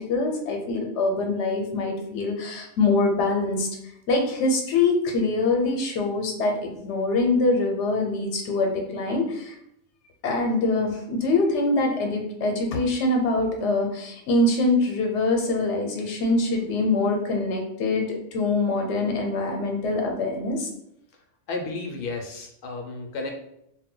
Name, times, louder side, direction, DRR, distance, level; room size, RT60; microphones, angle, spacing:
voice 1, 0.0-3.7 4.1-9.6 10.2-20.7, left 2 dB, 85° left, 2 dB, 0.9 m, -24 dB
voice 2, 21.5-23.3, left 3 dB, 60° left, 3 dB, 0.7 m, -32 dB
2.2 x 2.1 x 3.6 m, 0.78 s
omnidirectional pair, 1.2 m